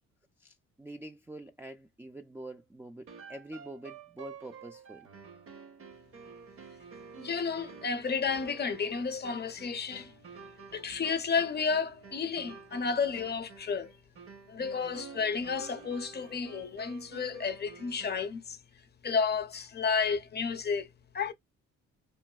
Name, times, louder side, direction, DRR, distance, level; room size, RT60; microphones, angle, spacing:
voice 1, 0.4-5.1, right 1 dB, 10° right, 0.3 m, -46 dB
sound 1, 3.1-18.4, right 5 dB, 50° right, 0.8 m, -50 dB
voice 2, 7.2-10.1 10.7-13.9 14.5-18.6 19.0-20.9 21.1-21.3, left 5 dB, 35° left, 0.6 m, -31 dB
3.0 x 2.6 x 2.3 m
cardioid pair, 90°, 30 cm